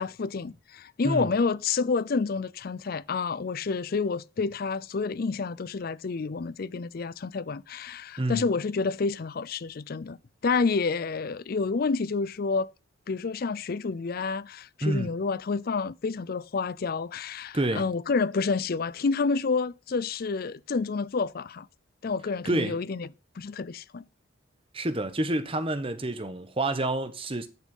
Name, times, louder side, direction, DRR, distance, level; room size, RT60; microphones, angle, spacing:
voice 1, 0.0-10.2 10.4-12.7 13.1-21.7 22.0-23.1 23.4-24.0, left 4 dB, 45° left, 0.4 m, -29 dB
voice 2, 14.8-15.1 17.5-17.9 22.4-22.8 24.7-27.5, right 1 dB, 25° right, 1.0 m, -28 dB
10.5 x 6.3 x 5.4 m
head